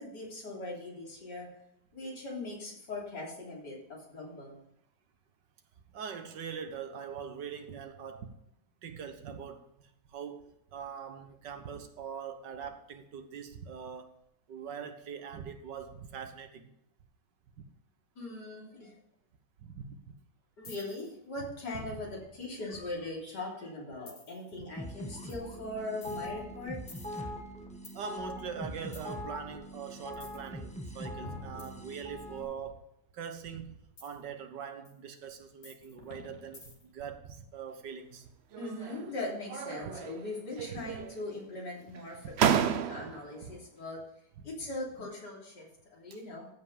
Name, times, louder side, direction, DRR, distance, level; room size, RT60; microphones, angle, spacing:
voice 1, 0.0-1.5 1.9-4.6 18.2-18.9 20.6-26.8 38.6-44.0 44.4-46.5, left 2 dB, 70° left, 3.9 m, -40 dB
voice 2, 5.9-8.3 8.8-9.7 10.1-14.2 14.5-16.7 17.6-17.7 19.6-20.0 27.9-32.9 33.1-38.3 39.8-39.9 40.7-40.8 42.5-42.8 43.4-43.6 44.4-44.5, right 7 dB, 80° right, 1.8 m, -42 dB
sound 1, 20.6-21.1 21.7-23.3 24.1-24.5 25.3-25.5 26.0-28.0 28.9-29.1 30.1-30.5 31.2-32.4 34.0-34.2 34.8-34.9 35.6-37.0, left 3 dB, 45° left, 2.1 m, -49 dB
sound 2, 24.8-32.4, equal, 5° left, 1.0 m, -42 dB
sound 3, 38.5-39.1 39.5-40.3 40.5-41.3 41.9-42.0 42.4-43.3, right 8 dB, 65° right, 0.6 m, -31 dB
14.5 x 5.8 x 5.0 m
omnidirectional pair, 1.9 m